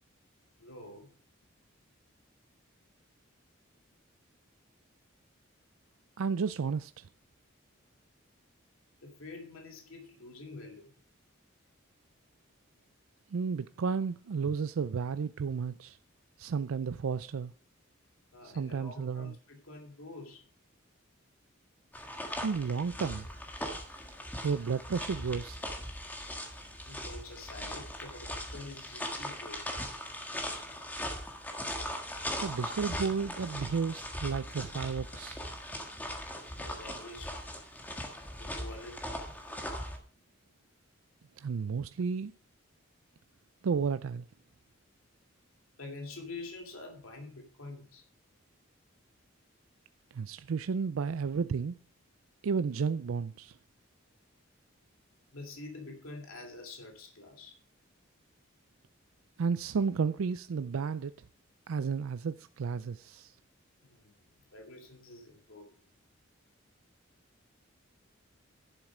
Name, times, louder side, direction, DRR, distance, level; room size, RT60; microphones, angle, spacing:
voice 1, 0.6-1.1 9.0-10.9 18.3-20.4 26.6-29.7 36.6-37.4 38.4-39.3 45.8-48.0 55.3-57.6 63.8-64.1 64.5-65.8, left 2 dB, 85° left, 2.6 m, -47 dB
voice 2, 6.2-7.1 13.3-16.0 16.4-17.5 18.4-19.3 22.4-23.3 24.4-25.6 32.4-35.4 41.4-42.3 43.6-44.3 50.1-51.7 52.4-53.5 59.4-61.1 61.7-63.3, right 5 dB, 85° right, 0.4 m, -32 dB
sound 1, 21.9-40.0, left 1 dB, 10° left, 1.6 m, -39 dB
11.0 x 7.3 x 5.0 m
head